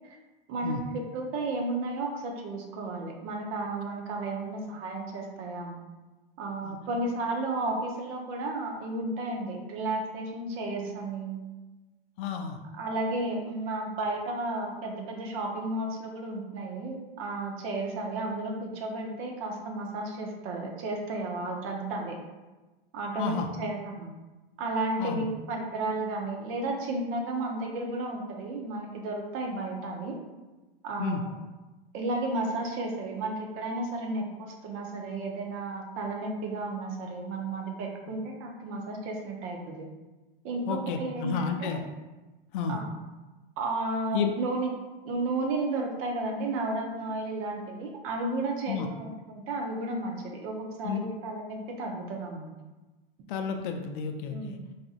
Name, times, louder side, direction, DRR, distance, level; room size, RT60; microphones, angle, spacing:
voice 1, 0.5-5.8 6.4-11.4 12.7-22.2 22.9-24.1 24.6-30.2 30.8-31.3 31.9-39.9 40.4-41.8 42.7-42.9 43.6-44.7 45.0-52.5 54.3-54.6, right 2 dB, 45° right, 1 dB, 0.7 m, -33 dB
voice 2, 12.2-12.6 23.2-23.5 25.0-25.2 31.0-31.2 40.7-41.8 42.5-42.8 44.1-44.3 48.7-48.9 50.8-51.1 53.3-54.6, left 6 dB, 60° left, 5 dB, 0.5 m, -31 dB
4.2 x 2.4 x 2.4 m, 1.1 s
hypercardioid pair, 95°, 30 cm